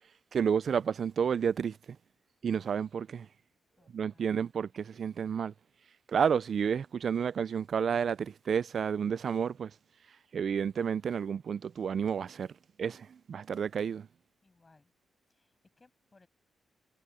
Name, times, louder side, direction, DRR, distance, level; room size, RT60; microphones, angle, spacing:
voice 1, 0.3-1.8 2.4-3.3 3.9-5.5 6.1-9.7 10.3-12.5 12.8-14.1, right 7 dB, 45° right, 0.3 m, -30 dB
voice 2, 3.8-4.3 14.4-14.9 15.3-16.3, left 3 dB, 20° left, 7.7 m, -65 dB
wide cardioid pair, 160°, 0 cm